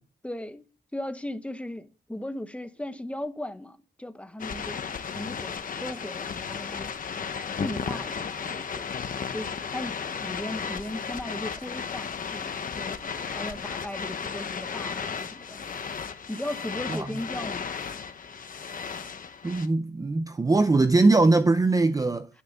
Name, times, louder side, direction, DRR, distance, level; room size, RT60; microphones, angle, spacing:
voice 1, 0.2-0.6 0.9-4.8 5.1-6.9 7.6-8.9 9.3-15.6 16.3-17.7, left 1 dB, 5° left, 0.9 m, -37 dB
sound 1, 4.4-19.7, left 6 dB, 50° left, 1.1 m, -34 dB
voice 2, 19.4-22.3, right 3 dB, 20° right, 0.6 m, -21 dB
9.8 x 9.6 x 8.1 m
wide cardioid pair, 145°, 18 cm